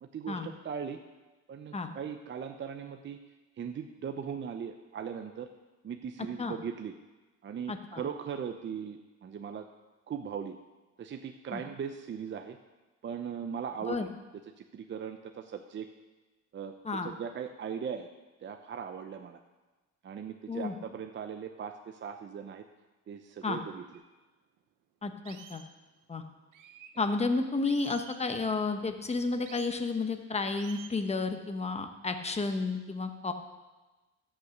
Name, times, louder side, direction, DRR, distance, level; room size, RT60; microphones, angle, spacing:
voice 1, 0.0-1.0 1.5-3.2 3.6-5.5 5.8-6.9 7.4-9.7 10.1-10.6 11.0-12.6 13.0-14.1 14.6-15.9 16.5-18.1 18.4-19.4 20.0-22.6 23.1-23.8, right 7 dB, 40° right, 6 dB, 0.7 m, -39 dB
voice 2, 7.7-8.0 11.5-11.6 13.9-14.1 16.8-17.1 20.5-20.7 23.4-23.6 25.0-25.6 26.1-26.2 27.0-33.3, left 3 dB, 20° left, 6 dB, 1.1 m, -31 dB
sound 1, 23.9-24.0 24.6-24.7 25.2-25.7 26.5-26.9 27.6-28.2 29.4-29.7 30.5-31.1, right 9 dB, 90° right, 1.0 m, -50 dB
14.5 x 5.9 x 6.5 m, 1.2 s
cardioid pair, 110°, 30 cm